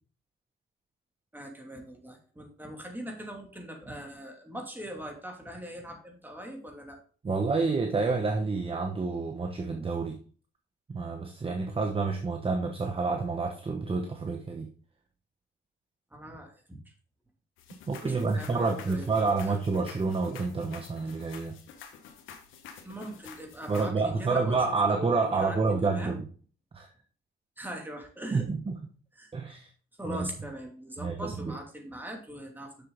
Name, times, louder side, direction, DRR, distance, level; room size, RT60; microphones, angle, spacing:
voice 1, 1.3-7.0 16.1-16.8 18.0-19.5 22.8-23.9 24.2-24.6 24.9-26.2 27.6-28.4 29.1-29.3 30.0-32.8, equal, 10° right, 1 dB, 2.7 m, -41 dB
voice 2, 7.2-10.2 10.9-14.7 17.9-21.6 23.7-26.2 26.7-26.9 28.3-28.7 29.3-29.7 30.0-30.3 31.0-31.5, right 4 dB, 30° right, 4 dB, 1.0 m, -28 dB
sound 1, 17.6-23.9, left 7 dB, 85° left, 1.4 m, -49 dB
6.9 x 6.7 x 3.9 m, 0.41 s
cardioid pair, 90°, 20 cm